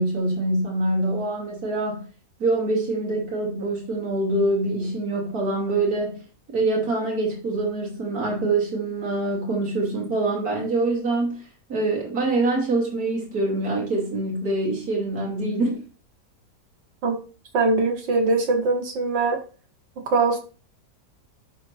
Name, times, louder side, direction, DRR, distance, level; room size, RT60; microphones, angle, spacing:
voice 1, 0.0-2.0 2.4-6.2 6.5-11.4 11.7-15.8, right 2 dB, 55° right, -2 dB, 3.0 m, -25 dB
voice 2, 17.5-19.4 20.1-20.4, right 3 dB, 80° right, 3 dB, 2.1 m, -21 dB
11.0 x 3.8 x 3.2 m, 0.36 s
omnidirectional pair, 1.9 m